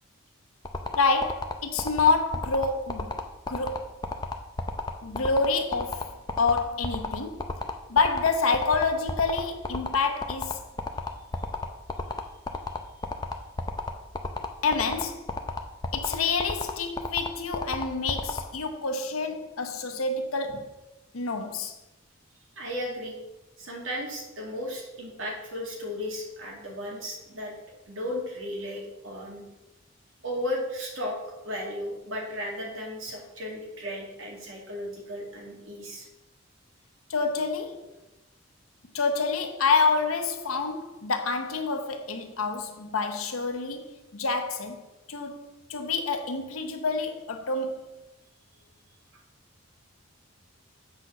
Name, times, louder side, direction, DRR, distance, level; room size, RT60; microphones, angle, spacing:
sound 1, 0.6-18.4, left 3 dB, 20° left, 0.5 m, -31 dB
voice 1, 0.9-3.2 3.5-4.0 5.0-7.5 7.9-10.6 14.6-15.3 15.9-20.8 21.1-21.8 37.1-37.9 38.9-47.9, left 4 dB, 90° left, 0.9 m, -27 dB
voice 2, 22.6-23.2 23.6-27.5 27.9-29.4 30.2-36.1, left 1 dB, 75° right, 2.2 m, -35 dB
7.9 x 4.1 x 5.9 m
head